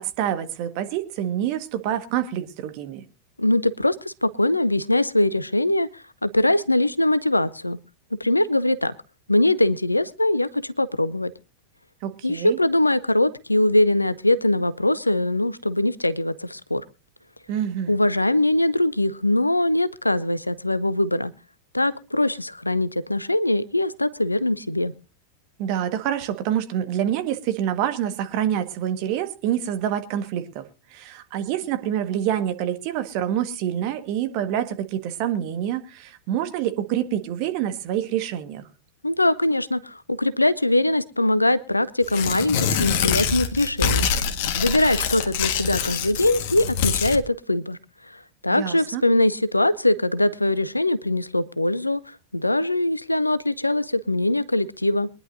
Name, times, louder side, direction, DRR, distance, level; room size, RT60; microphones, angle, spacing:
voice 1, 0.0-3.0 12.0-12.6 17.5-18.0 25.6-30.6 30.9-38.6 48.5-49.0, right 10 dB, 45° right, 10 dB, 1.5 m, -27 dB
voice 2, 3.4-7.8 8.2-8.9 9.3-11.3 12.2-16.8 17.9-21.3 21.7-24.9 39.0-44.1 44.6-47.8 48.4-55.1, left 1 dB, 85° left, 17 dB, 0.6 m, -22 dB
Tearing, 42.0-47.2, left 7 dB, 50° left, 1.5 m, -25 dB
23.5 x 10.5 x 2.6 m, 0.29 s
figure-of-eight pair, 90°, 0 cm